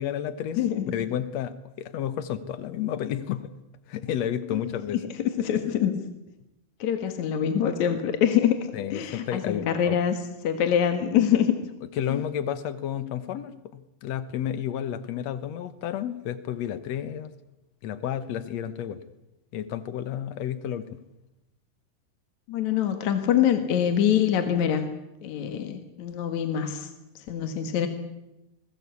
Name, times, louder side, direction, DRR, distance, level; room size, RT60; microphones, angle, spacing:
voice 1, 0.0-0.6 0.9-3.5 3.9-5.0 8.7-10.0 11.9-17.3 17.8-19.0 19.5-21.0, left 10 dB, 90° left, 13 dB, 1.5 m, -31 dB
voice 2, 0.6-0.9 4.5-4.6 5.2-6.0 6.8-8.6 8.9-10.2 10.4-11.5 12.0-12.2 22.5-24.9 25.2-26.9 27.2-27.9, left 9 dB, 55° left, 7 dB, 2.6 m, -24 dB
28.0 x 20.5 x 8.3 m, 0.93 s
omnidirectional pair, 4.6 m